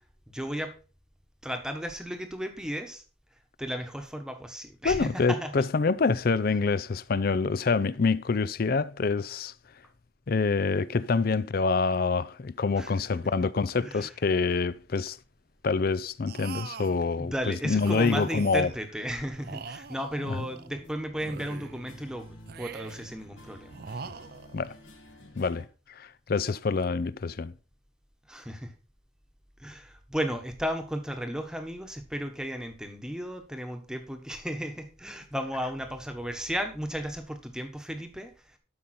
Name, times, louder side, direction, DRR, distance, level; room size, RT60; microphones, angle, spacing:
voice 1, 0.3-0.8 1.4-3.0 3.6-5.5 12.7-12.9 13.8-14.1 17.2-24.1 28.3-28.7 29.6-38.6, equal, 5° right, 1.2 m, -34 dB
voice 2, 4.8-9.5 10.3-15.2 15.6-18.7 20.3-20.4 24.5-24.7 25.4-27.5, left 4 dB, 45° left, 0.4 m, -26 dB
sound 1, 16.3-17.1 17.8-18.9 19.4-20.7 21.2-21.9 22.5-23.2 23.7-24.7, right 5 dB, 50° right, 0.5 m, -43 dB
sound 2, 20.2-25.7, left 1 dB, 75° left, 2.2 m, -50 dB
12.5 x 5.5 x 4.3 m
head